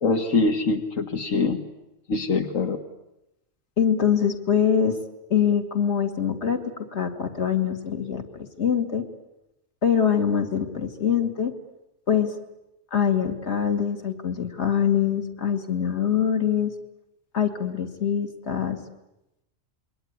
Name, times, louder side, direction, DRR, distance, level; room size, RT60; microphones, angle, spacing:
voice 1, 0.0-1.6 2.1-2.8, left 3 dB, 85° left, 5 dB, 2.0 m, -23 dB
voice 2, 3.8-5.0 5.3-6.6 6.9-9.0 9.8-11.5 12.1-12.3 12.9-16.7 17.3-18.8, left 8 dB, 60° left, 5 dB, 2.5 m, -24 dB
28.0 x 22.5 x 9.5 m, 0.91 s
omnidirectional pair, 1.3 m